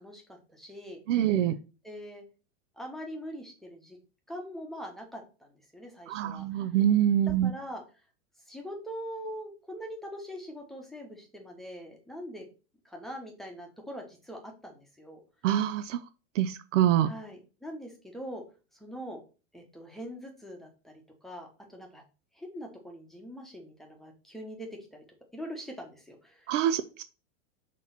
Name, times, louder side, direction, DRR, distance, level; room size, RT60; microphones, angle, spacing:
voice 1, 0.0-1.0 1.8-2.2 2.8-4.0 4.3-6.4 7.4-7.8 8.5-12.4 12.8-15.2 17.0-18.4 18.8-19.2 19.5-22.0 22.4-25.0 25.3-26.5, equal, ahead, 1 dB, 0.9 m, -42 dB
voice 2, 1.1-1.6 6.1-7.5 15.4-16.0 16.4-17.1 26.5-27.0, right 11 dB, 75° right, 11 dB, 0.6 m, -25 dB
6.1 x 3.0 x 5.7 m, 0.34 s
supercardioid pair, 160°, 37 cm